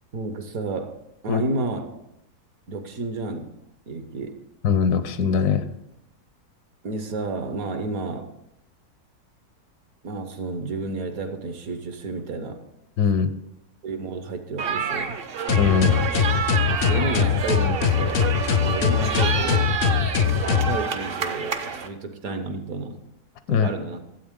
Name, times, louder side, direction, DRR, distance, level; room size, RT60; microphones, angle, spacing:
voice 1, 0.1-1.0 1.2-2.0 2.7-3.6 3.9-4.4 6.8-8.3 10.0-12.6 13.8-15.2 16.7-18.3 18.6-23.0 23.5-24.0, right 3 dB, 65° right, 7 dB, 1.4 m, -31 dB
voice 2, 4.6-5.7 13.0-13.3 15.6-16.0 23.5-23.7, left 6 dB, 80° left, 11 dB, 1.3 m, -21 dB
sound 1, 14.6-21.9, right 6 dB, 50° right, 0.7 m, -28 dB
sound 2, 15.5-20.8, left 8 dB, 65° left, 0.7 m, -21 dB
12.5 x 8.0 x 3.7 m, 0.84 s
omnidirectional pair, 1.6 m